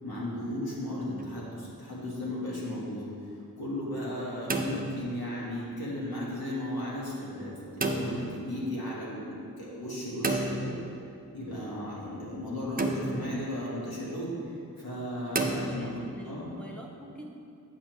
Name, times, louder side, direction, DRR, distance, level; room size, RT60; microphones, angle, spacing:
voice 1, 0.0-10.7 11.3-14.3 14.8-15.9 16.3-16.5, left 1 dB, 75° left, -6 dB, 1.9 m, -35 dB
sound 1, 1.1-1.6 4.2-5.5 7.8-8.4 10.2-11.2 12.8-13.5 15.3-16.2, right 2 dB, 25° right, 0.5 m, -32 dB
voice 2, 15.4-17.3, right 1 dB, 5° left, -3 dB, 0.9 m, -46 dB
8.6 x 6.9 x 3.1 m, 2.5 s
wide cardioid pair, 105°, 37 cm